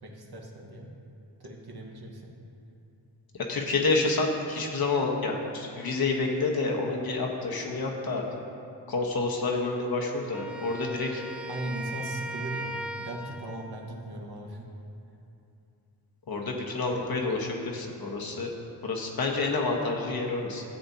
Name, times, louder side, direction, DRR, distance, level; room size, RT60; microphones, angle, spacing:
voice 1, 0.0-0.9 1.4-2.3 11.5-14.7, right 1 dB, 60° right, -1 dB, 1.4 m, -38 dB
voice 2, 3.4-8.2 8.9-11.2 16.3-18.5 18.8-20.6, left 3 dB, 55° left, 0 dB, 1.3 m, -28 dB
Wind instrument woodwind instrument, 10.3-13.7, right 1 dB, 5° right, 0.3 m, -38 dB
14.0 x 7.8 x 2.8 m, 2.8 s
wide cardioid pair, 90°, 43 cm